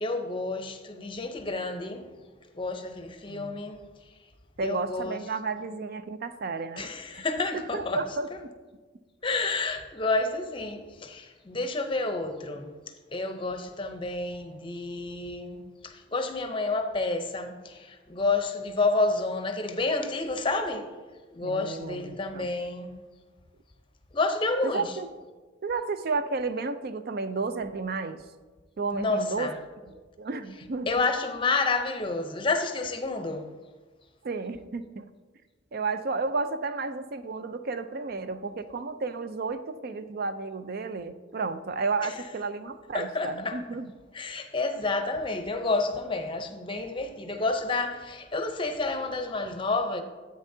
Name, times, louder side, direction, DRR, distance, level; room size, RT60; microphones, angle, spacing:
voice 1, 0.0-2.1 2.5-3.8 4.6-5.2 6.8-8.0 8.3-8.4 9.2-12.7 13.1-20.9 21.3-22.9 24.1-24.9 28.9-29.6 30.9-33.5 42.0-42.1 42.9-43.6 44.1-50.0, left 3 dB, 25° left, 0.6 m, -29 dB
voice 2, 3.3-3.6 4.6-6.9 7.1-7.2 7.5-8.5 21.4-22.5 24.6-25.1 25.6-28.2 28.8-29.5 29.9-30.9 34.2-35.0 35.7-43.9, right 4 dB, 50° right, 0.4 m, -32 dB
10.0 x 8.2 x 2.7 m
head